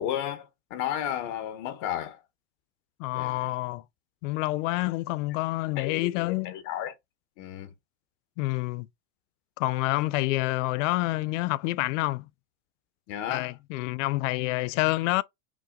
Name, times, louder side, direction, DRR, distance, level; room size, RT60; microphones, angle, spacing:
voice 1, 0.0-2.2 3.1-3.5 5.8-6.9 7.4-7.7 13.1-13.5, left 11 dB, 50° left, 1.5 m, -33 dB
voice 2, 3.0-3.8 4.2-6.5 8.4-8.9 9.6-12.3 13.3-15.2, left 20 dB, 75° left, 0.6 m, -28 dB
6.0 x 2.2 x 3.7 m
supercardioid pair, 130°, 38 cm